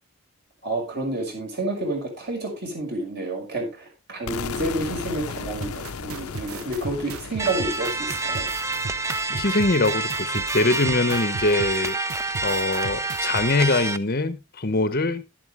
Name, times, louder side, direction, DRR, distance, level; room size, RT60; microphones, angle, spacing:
voice 1, 0.6-8.5, right 2 dB, 45° right, 5.9 m, -29 dB
sound 1, 4.3-10.1, left 5 dB, 80° left, 0.7 m, -36 dB
sound 2, 5.6-13.5, right 4 dB, 75° right, 0.9 m, -36 dB
sound 3, 7.4-14.0, right 3 dB, 15° right, 0.5 m, -28 dB
voice 2, 9.3-12.0 12.4-15.2, left 2 dB, 45° left, 0.8 m, -23 dB
11.5 x 11.0 x 3.3 m
head